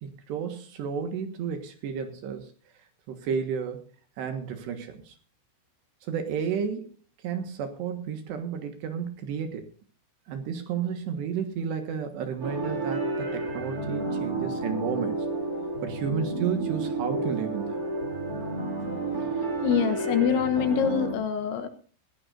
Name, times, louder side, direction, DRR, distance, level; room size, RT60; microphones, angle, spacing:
voice 1, 0.0-2.5 3.1-3.8 4.2-5.1 6.0-7.0 7.2-9.6 10.3-15.3 15.8-17.8, right 7 dB, 70° right, 6 dB, 3.2 m, -32 dB
sound 1, 12.4-21.1, right 2 dB, 35° right, 1.5 m, -31 dB
voice 2, 19.6-21.7, left 8 dB, 75° left, 9 dB, 3.2 m, -25 dB
19.5 x 16.0 x 2.6 m, 0.42 s
omnidirectional pair, 5.9 m